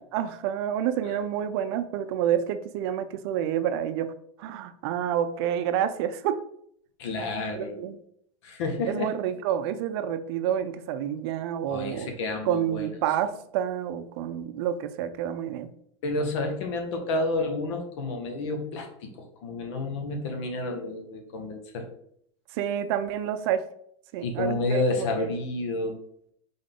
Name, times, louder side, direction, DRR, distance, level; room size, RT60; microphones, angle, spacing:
voice 1, 0.0-4.1 4.4-6.4 7.5-8.0 8.9-12.1 12.5-15.7 22.5-23.6 24.1-25.3, right 10 dB, 55° right, 11 dB, 0.5 m, -29 dB
voice 2, 7.0-7.8 8.4-9.1 11.7-13.0 16.0-21.9 24.2-26.0, left 2 dB, 65° left, 4 dB, 1.3 m, -30 dB
3.8 x 3.8 x 3.6 m, 0.67 s
supercardioid pair, 145°, 16 cm